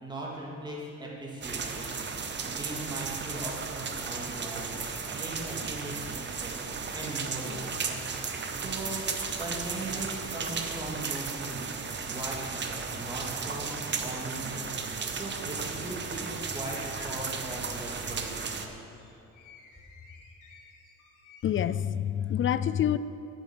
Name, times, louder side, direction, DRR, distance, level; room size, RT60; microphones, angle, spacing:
voice 1, 0.0-1.9 2.4-4.7 5.1-6.6 6.9-8.1 8.6-9.0 9.4-11.7 12.1-14.7 15.1-16.8 17.0-18.8, right 1 dB, 15° right, -4 dB, 2.1 m, -39 dB
sound 1, 1.4-18.7, right 5 dB, 35° right, 0.8 m, -35 dB
sound 2, 16.2-21.8, left 4 dB, 85° left, 1.7 m, -54 dB
voice 2, 21.4-23.0, left 10 dB, 45° left, 15 dB, 0.4 m, -27 dB
8.5 x 8.1 x 5.8 m, 2.6 s
cardioid pair, 90°, 30 cm